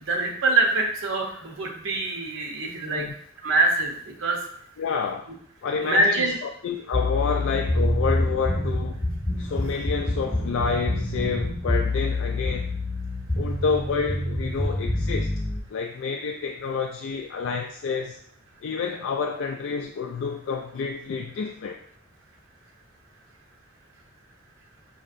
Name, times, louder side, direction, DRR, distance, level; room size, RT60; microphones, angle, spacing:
voice 1, 0.0-3.0 3.4-4.4 5.8-6.4, right 2 dB, 70° right, 0 dB, 0.7 m, -24 dB
voice 2, 4.8-5.3 5.6-9.0 9.4-12.7 13.4-15.3 15.7-18.2 18.6-21.8, left 5 dB, 65° left, 3 dB, 0.3 m, -29 dB
sound 1, 6.9-15.6, left 1 dB, 20° left, 0.8 m, -26 dB
5.5 x 2.8 x 2.5 m, 0.62 s
head